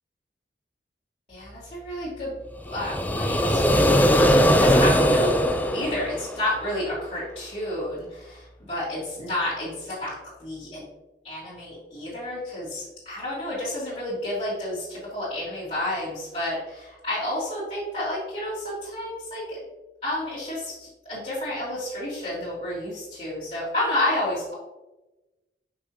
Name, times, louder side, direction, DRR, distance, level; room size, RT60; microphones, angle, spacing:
voice 1, 1.3-5.4 5.7-10.1 10.4-10.8 11.2-19.6 20.0-24.5, left 1 dB, 40° left, -11 dB, 2.2 m, -30 dB
sound 1, 2.7-6.7, equal, 10° left, 0.4 m, -20 dB
5.9 x 5.6 x 3.1 m, 1.0 s
head